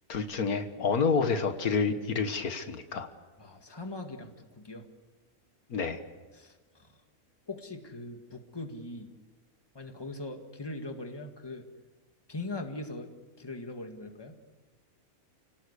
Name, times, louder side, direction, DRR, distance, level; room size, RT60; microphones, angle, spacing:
voice 1, 0.1-3.1 5.7-6.0, left 5 dB, 80° left, 8 dB, 1.9 m, -28 dB
voice 2, 3.4-4.8 6.3-6.9 7.5-9.1 9.7-11.6 12.3-13.1 13.4-14.4, left 2 dB, 15° left, 5 dB, 1.9 m, -41 dB
29.5 x 18.0 x 8.3 m, 1.3 s
omnidirectional pair, 1.5 m